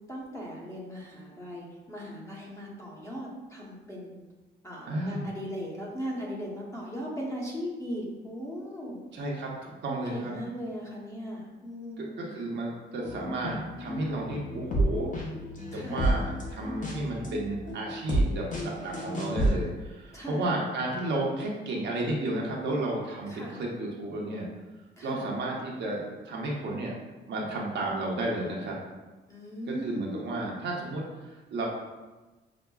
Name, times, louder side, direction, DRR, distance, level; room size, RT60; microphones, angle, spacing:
voice 1, 0.1-4.2 4.6-9.0 9.9-12.3 15.7-16.0 20.1-20.5 23.3-23.6 25.0-25.2 29.3-30.5, equal, 15° left, -4 dB, 0.9 m, -38 dB
voice 2, 4.9-5.2 9.1-10.3 12.0-15.1 15.7-24.5 25.0-26.9 27.3-28.8 29.7-31.7, right 2 dB, 65° right, -2 dB, 0.8 m, -32 dB
sound 1, 13.0-19.5, right 1 dB, 40° left, 0.8 m, -30 dB
5.8 x 2.1 x 2.3 m, 1.2 s
cardioid pair, 110°, 20 cm